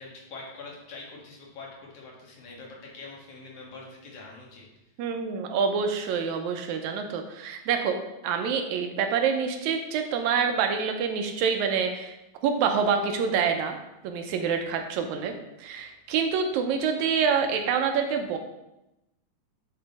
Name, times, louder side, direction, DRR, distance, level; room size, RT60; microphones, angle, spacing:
voice 1, 0.0-4.6, left 3 dB, 55° left, -3 dB, 2.4 m, -44 dB
voice 2, 5.0-8.0 8.2-12.2 12.4-13.8 14.0-15.3 15.6-18.4, right 6 dB, 80° right, 5 dB, 1.8 m, -26 dB
8.8 x 3.7 x 4.0 m, 0.92 s
omnidirectional pair, 3.5 m